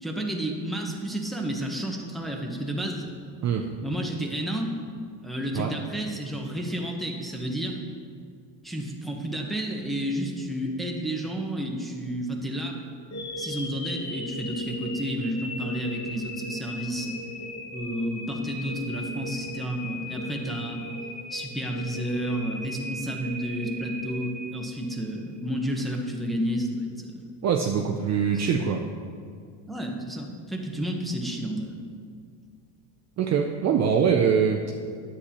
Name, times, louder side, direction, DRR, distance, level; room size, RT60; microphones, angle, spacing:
voice 1, 0.0-3.0 3.8-4.8 5.2-7.8 8.6-12.8 13.4-17.2 17.7-20.8 21.3-27.2 28.3-28.5 29.7-31.8, right 1 dB, ahead, 0 dB, 0.8 m, -31 dB
sound 1, 13.1-25.2, left 1 dB, 35° left, 1.1 m, -38 dB
voice 2, 27.4-28.8 33.2-34.7, right 7 dB, 35° right, 2 dB, 0.5 m, -23 dB
9.8 x 8.3 x 2.9 m, 2.2 s
cardioid pair, 125°, 48 cm